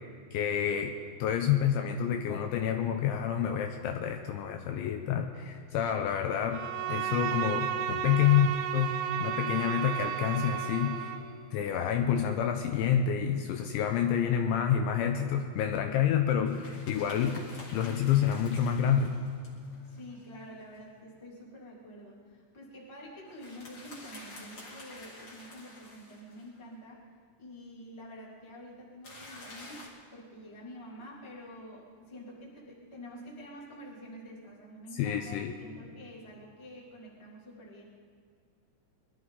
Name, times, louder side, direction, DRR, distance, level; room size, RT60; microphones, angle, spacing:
voice 1, 0.3-11.1 11.5-17.4 17.7-19.2 34.9-35.5, left 9 dB, 80° left, 5 dB, 2.8 m, -28 dB
sound 1, 3.3-5.1 5.4-5.6 7.9-11.6, right 3 dB, 65° right, 1.4 m, -53 dB
Bowed string instrument, 6.5-11.3, right 9 dB, 85° right, 2.9 m, -33 dB
sound 2, 16.5-20.8 23.3-26.6 29.0-29.9, left 2 dB, 40° left, 2.4 m, -50 dB
voice 2, 19.8-27.0 27.4-37.8, equal, 10° left, -5 dB, 1.5 m, -48 dB
22.0 x 13.0 x 4.0 m, 2.3 s
omnidirectional pair, 5.7 m